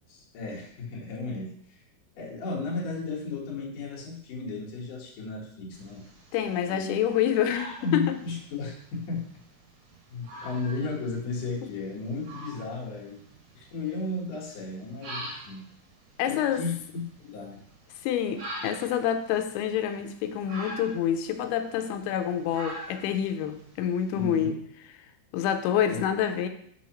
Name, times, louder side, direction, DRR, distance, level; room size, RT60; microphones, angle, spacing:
voice 1, 0.1-1.8 2.1-6.0 6.6-7.0 7.8-9.3 10.1-13.2 13.5-15.7 16.2-17.6 24.1-24.6 25.7-26.1, left 3 dB, 65° left, -3 dB, 2.7 m, -34 dB
sound 1, 5.7-24.4, right 1 dB, 85° right, 3.7 m, -45 dB
voice 2, 6.3-8.2 16.2-16.6 18.0-24.6 25.3-26.5, left 9 dB, 85° left, 8 dB, 2.5 m, -27 dB
6.2 x 5.6 x 3.0 m, 0.66 s
omnidirectional pair, 4.5 m